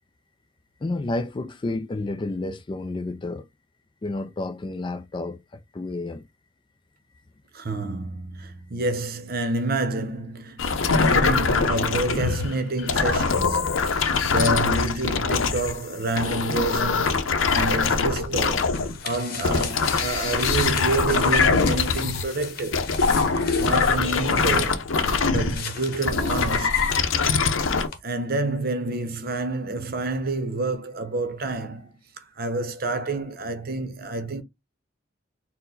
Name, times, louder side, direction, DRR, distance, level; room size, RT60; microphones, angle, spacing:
voice 1, 0.8-3.5 4.0-5.4 5.7-6.3, left 2 dB, 25° left, 0.3 m, -30 dB
voice 2, 7.5-17.1 17.5-18.7 19.0-22.9 23.6-24.8 25.3-26.9 28.0-31.9 32.4-34.4, right 2 dB, 50° right, 0.8 m, -28 dB
sound 1, 10.6-15.8 16.1-19.0 19.4-22.3 22.7-27.9, left 4 dB, 85° left, 0.7 m, -23 dB
sound 2, 18.6-27.6 27.9-28.0, left 6 dB, 50° left, 0.9 m, -38 dB
4.4 x 2.2 x 3.9 m
head